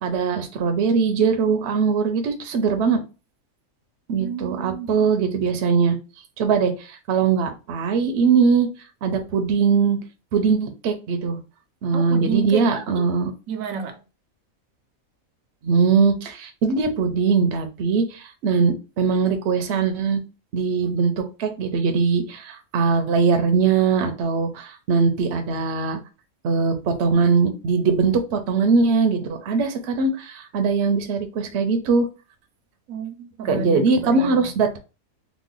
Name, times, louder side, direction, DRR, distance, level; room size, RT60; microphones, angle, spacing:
voice 1, 0.0-3.0 4.1-6.0 6.4-8.7 9.0-10.0 10.3-11.4 11.8-13.3 15.6-20.2 20.5-26.0 26.4-32.1 33.4-34.8, right 5 dB, 65° right, 0.8 m, -21 dB
voice 2, 4.2-5.1 11.9-12.7 13.0-13.1 13.5-14.0 32.9-34.5, right 6 dB, 85° right, 1.1 m, -31 dB
3.0 x 2.2 x 3.7 m
omnidirectional pair, 1.4 m